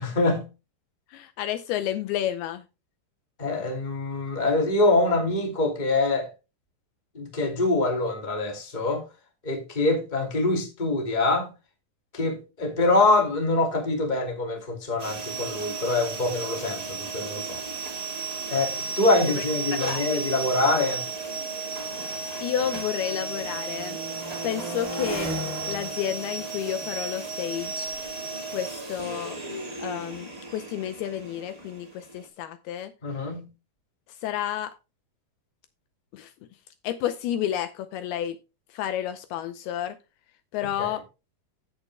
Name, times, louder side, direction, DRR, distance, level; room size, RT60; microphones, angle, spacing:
voice 1, 0.0-0.5 3.4-6.3 7.1-9.0 9.4-11.5 12.1-17.6 18.5-21.0 33.0-33.5 40.8-41.0, left 2 dB, 15° left, 1.9 m, -24 dB
voice 2, 1.1-2.6 19.3-19.5 19.7-20.1 22.4-24.0 24.4-25.3 25.7-27.9 28.5-29.4 29.8-32.9 34.2-34.7 36.1-36.3 36.8-38.4 38.7-40.0 40.5-41.0, left 10 dB, 80° left, 2.5 m, -30 dB
sound 1, 15.0-32.3, right 4 dB, 75° right, 0.3 m, -34 dB
sound 2, 17.7-17.8 18.5-22.5 22.8-29.5, right 1 dB, 25° right, 0.9 m, -40 dB
16.5 x 6.7 x 2.2 m
omnidirectional pair, 4.8 m